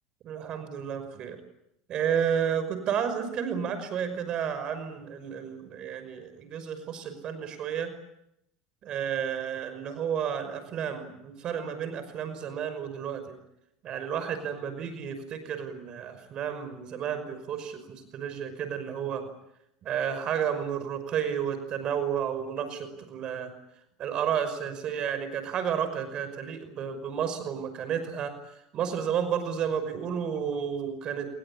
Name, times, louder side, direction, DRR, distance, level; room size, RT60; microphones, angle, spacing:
voice 1, 0.2-1.4 1.9-7.9 8.8-13.4 13.8-19.2 19.8-23.5 24.0-31.3, right 8 dB, 45° right, 10 dB, 5.7 m, -31 dB
29.0 x 22.0 x 8.8 m, 0.82 s
supercardioid pair, 110°, 2 cm